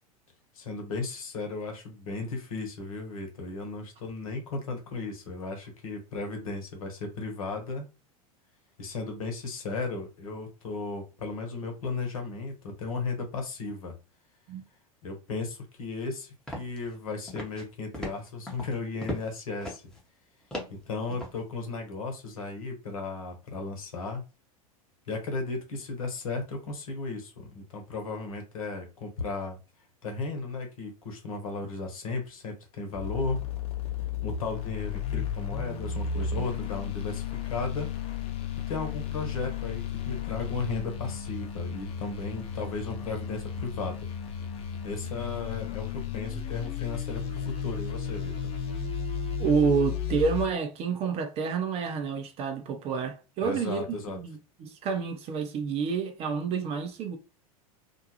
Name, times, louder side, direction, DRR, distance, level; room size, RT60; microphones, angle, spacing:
voice 1, 0.5-7.9 8.8-13.9 15.0-19.8 20.9-24.2 25.1-29.6 30.0-33.4 34.2-37.9 38.7-44.1 44.8-48.5 53.4-54.2, left 3 dB, 65° left, 1.0 m, -35 dB
sound 1, 16.5-17.0 17.3-17.7 17.9-19.3 19.6-20.0 20.5-21.4, left 1 dB, 5° left, 0.9 m, -37 dB
sound 2, 32.9-50.5, left 7 dB, 30° left, 0.7 m, -34 dB
voice 2, 49.4-57.2, right 6 dB, 35° right, 0.6 m, -29 dB
2.6 x 2.2 x 2.9 m
figure-of-eight pair, 85°, 19 cm